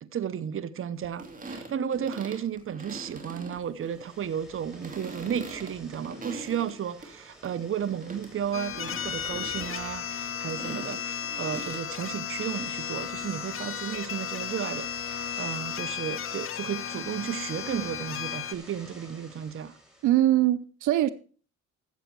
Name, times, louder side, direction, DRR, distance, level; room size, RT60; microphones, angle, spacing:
voice 1, 0.0-19.8, right 8 dB, 45° right, 0.8 m, -33 dB
sound 1, 1.0-7.1 7.4-11.8, right 2 dB, 25° right, 2.6 m, -43 dB
sound 2, 3.6-20.1, equal, ahead, 4.2 m, -51 dB
sound 3, 8.5-18.6, left 8 dB, 45° left, 0.8 m, -34 dB
voice 2, 20.0-21.1, right 14 dB, 80° right, 0.6 m, -22 dB
13.5 x 7.7 x 4.5 m
cardioid pair, 90°, 30 cm